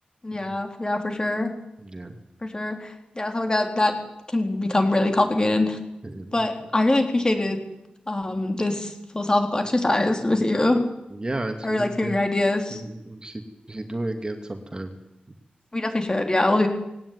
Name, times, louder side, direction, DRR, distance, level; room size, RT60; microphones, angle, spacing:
voice 1, 0.2-1.5 2.4-3.9 4.3-5.8 6.3-7.6 8.1-10.8 11.6-12.8 15.7-16.7, left 2 dB, 25° left, 5 dB, 4.0 m, -23 dB
voice 2, 1.8-2.1 6.0-6.4 11.1-12.2 12.7-13.4 13.7-14.9, right 2 dB, 30° right, 6 dB, 2.5 m, -32 dB
19.5 x 18.0 x 9.7 m, 0.87 s
wide cardioid pair, 95°, 3 cm